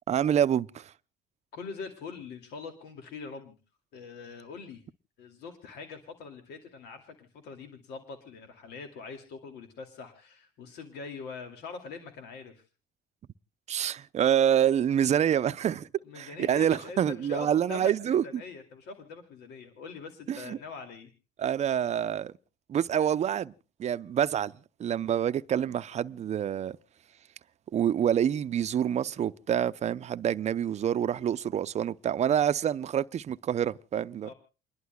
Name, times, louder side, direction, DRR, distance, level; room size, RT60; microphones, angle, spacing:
voice 1, 0.1-0.9 13.7-15.9 16.2-18.2 20.3-20.6 21.4-22.3 22.7-23.5 23.8-24.5 24.8-26.8 27.7-34.3, right 9 dB, 40° right, 0.6 m, -27 dB
voice 2, 1.5-3.6 3.9-4.8 5.2-12.6 16.0-21.1 34.2-34.3, left 4 dB, 80° left, 2.4 m, -43 dB
29.5 x 11.5 x 2.2 m
cardioid pair, 110°, 17 cm